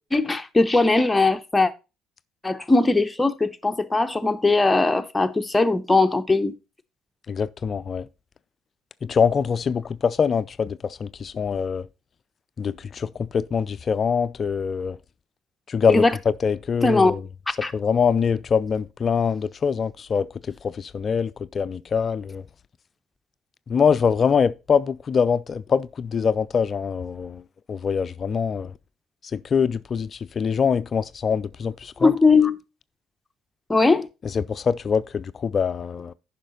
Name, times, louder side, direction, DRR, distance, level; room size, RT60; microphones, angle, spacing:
voice 1, 0.1-1.7 2.4-6.5 15.9-16.1 16.8-17.1 17.6-17.7 32.0-32.6 33.7-34.1, left 3 dB, 15° left, 0.9 m, -19 dB
voice 2, 7.3-8.1 9.0-11.8 12.6-15.0 15.7-17.2 17.7-20.3 20.6-22.4 23.7-27.4 27.7-28.7 29.3-32.1 34.3-36.1, left 6 dB, 45° left, 0.4 m, -24 dB
10.0 x 5.7 x 4.0 m
hypercardioid pair, 55°, 0 cm